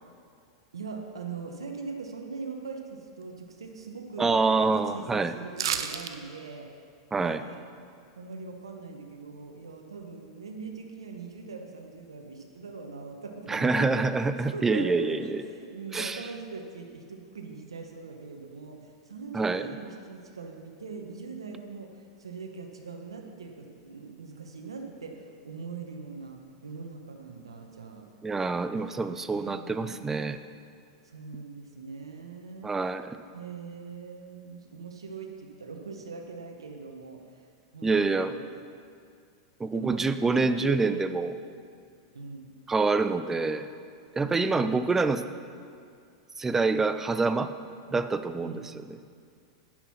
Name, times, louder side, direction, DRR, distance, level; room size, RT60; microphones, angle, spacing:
voice 1, 0.7-6.7 7.1-7.6 8.2-28.1 29.3-30.2 31.0-32.7 33.3-37.5 37.7-38.4 39.7-40.1 40.3-40.9 42.1-42.5 44.2-44.8 48.4-48.7, right 4 dB, 85° right, 3 dB, 1.0 m, -41 dB
voice 2, 4.2-5.3 7.1-7.4 13.5-15.4 15.9-16.2 19.3-19.6 28.2-30.4 32.6-33.2 37.8-38.3 39.6-41.3 42.7-43.7 44.1-45.2 46.4-47.5 47.9-48.6, right 3 dB, 15° right, 11 dB, 0.5 m, -26 dB
sound 1, 5.6-6.1 6.5-6.6, right 9 dB, 70° right, 0.6 m, -30 dB
10.0 x 6.3 x 5.7 m, 2.2 s
hypercardioid pair, 100°, 3 cm